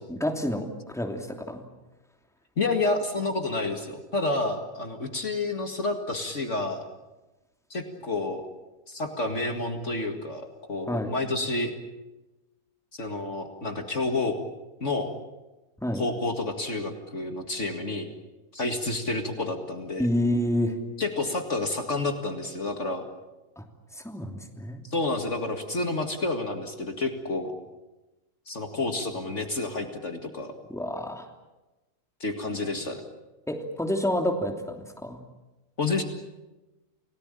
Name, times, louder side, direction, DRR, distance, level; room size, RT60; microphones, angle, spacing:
voice 1, 0.1-0.7 0.9-1.6 10.9-11.1 15.8-16.0 20.0-20.7 23.9-24.8 30.7-31.3 33.5-35.2, left 1 dB, ahead, 3 dB, 2.9 m, -28 dB
voice 2, 2.6-6.8 7.7-8.4 8.9-11.7 13.0-14.4 14.8-15.1 15.9-18.1 18.5-20.1 21.0-23.0 24.8-27.5 28.5-30.5 32.2-33.0 35.8-36.0, left 2 dB, 50° left, 5 dB, 2.3 m, -29 dB
29.5 x 18.0 x 9.0 m, 1.1 s
omnidirectional pair, 1.6 m